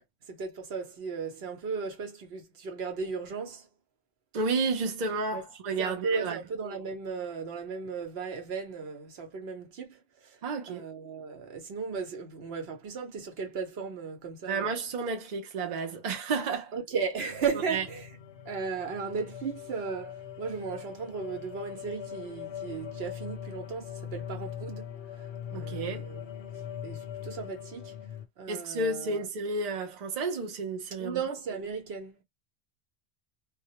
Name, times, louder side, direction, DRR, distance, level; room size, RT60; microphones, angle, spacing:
voice 1, 0.3-3.7 5.3-5.4 5.8-10.4 10.7-14.7 16.7-18.1 18.5-24.9 25.5-26.2 26.8-28.0 28.4-29.2 31.0-32.2, right 5 dB, 70° right, 1.0 m, -36 dB
voice 2, 4.3-6.4 10.4-10.8 14.5-16.7 17.7-17.8 25.5-26.1 28.5-31.2, right 3 dB, 50° right, 0.7 m, -31 dB
sound 1, 17.3-28.3, left 9 dB, 85° left, 0.9 m, -41 dB
2.2 x 2.1 x 2.8 m
omnidirectional pair, 1.1 m